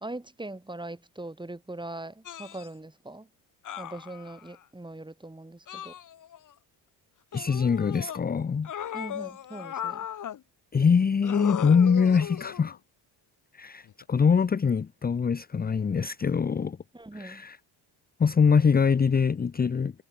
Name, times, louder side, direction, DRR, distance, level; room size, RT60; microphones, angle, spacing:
voice 1, 0.0-3.3 3.8-5.9 8.9-10.1 16.9-17.5, right 2 dB, 10° right, 2.3 m, -41 dB
sound 1, 2.3-2.7 3.7-4.6 5.7-6.5 7.3-8.2 8.6-10.4 11.2-12.7 13.9-14.0, left 10 dB, 40° left, 0.9 m, -37 dB
voice 2, 7.3-8.7 10.7-12.8 13.5-16.8 17.2-17.6 18.2-19.9, left 6 dB, 20° left, 0.6 m, -23 dB
cardioid pair, 75°, 46 cm